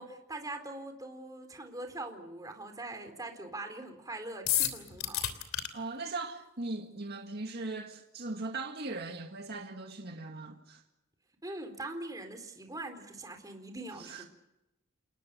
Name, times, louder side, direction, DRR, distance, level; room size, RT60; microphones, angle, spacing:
voice 1, 0.0-5.3 11.4-14.3, right 2 dB, 15° right, 4.0 m, -42 dB
sound 1, 4.5-5.7, left 11 dB, 75° left, 3.1 m, -30 dB
voice 2, 5.7-10.8 14.0-14.3, right 3 dB, 50° right, 2.1 m, -39 dB
29.0 x 20.0 x 6.9 m
head